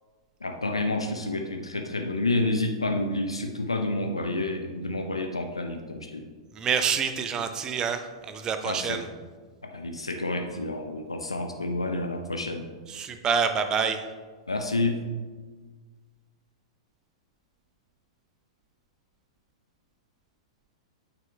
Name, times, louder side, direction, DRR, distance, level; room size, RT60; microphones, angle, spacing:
voice 1, 0.4-6.3 8.6-9.1 9.6-12.7 14.5-15.1, left 2 dB, 85° left, 5 dB, 0.6 m, -29 dB
voice 2, 6.6-9.0 12.9-14.0, right 6 dB, 25° right, 8 dB, 0.7 m, -27 dB
9.1 x 5.9 x 3.4 m, 1.4 s
figure-of-eight pair, 100°, 3 cm